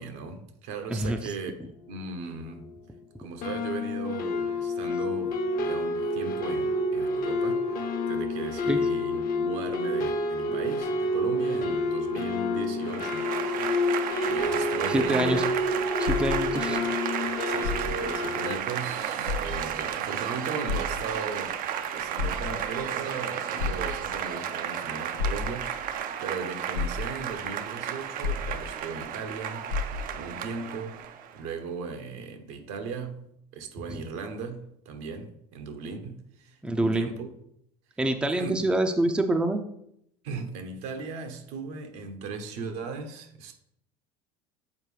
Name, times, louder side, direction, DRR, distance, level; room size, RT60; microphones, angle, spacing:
voice 1, 0.0-1.5 1.9-2.6 3.2-15.5 16.6-16.8 17.5-21.6 21.9-25.8 26.2-31.0 31.3-33.2 33.5-37.3 38.3-38.6 40.2-43.5, right 4 dB, 60° right, 1.0 m, -37 dB
voice 2, 0.9-1.3 8.7-8.8 10.5-10.6 14.9-15.4 16.0-16.8 33.9-34.0 36.6-37.1 38.0-39.6, right 1 dB, 5° right, 0.6 m, -26 dB
sound 1, 2.2-2.3 2.5-2.9 3.4-18.6, left 2 dB, 45° left, 1.0 m, -29 dB
Applause / Crowd, 12.8-31.4, right 9 dB, 45° right, 0.6 m, -33 dB
sound 2, 15.0-16.9 17.5-18.2 18.6-18.7 19.2-19.9 20.7-21.5 22.0-22.9 23.6-24.3 25.2-25.9 26.4-26.5 26.7-27.5 28.2-29.0 29.3-29.4 29.7-30.3 31.0-31.1, left 5 dB, 90° left, 0.7 m, -32 dB
7.4 x 4.4 x 3.3 m
figure-of-eight pair, 70°, 20 cm